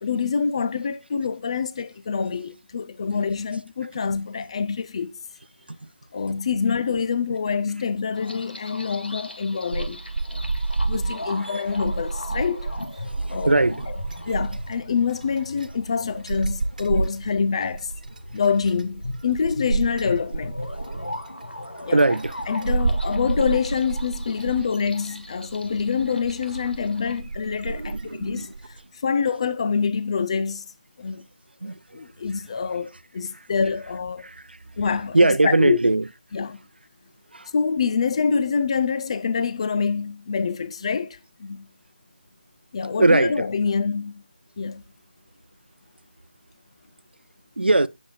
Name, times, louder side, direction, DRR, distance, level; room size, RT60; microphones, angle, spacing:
voice 1, 0.0-5.1 6.1-10.0 10.3-10.4 10.9-12.7 13.3-13.5 14.2-17.9 18.3-20.6 21.8-22.0 22.5-28.5 29.0-30.6 31.0-31.2 31.6-34.3 34.8-35.8 36.3-36.6 37.5-41.6 42.7-44.2 44.6-44.8, left 5 dB, 35° left, 0.6 m, -26 dB
sound 1, 8.1-27.2, left 1 dB, 80° left, 1.9 m, -39 dB
sound 2, 9.7-28.8, right 3 dB, 50° right, 1.3 m, -30 dB
voice 2, 13.2-13.9 20.9-21.1 21.8-22.4 27.7-28.5 31.6-32.0 34.2-34.6 35.1-36.0 37.3-37.5 43.0-43.5 47.6-47.9, right 2 dB, 80° right, 0.7 m, -21 dB
16.0 x 7.2 x 2.3 m
figure-of-eight pair, 160°, 5 cm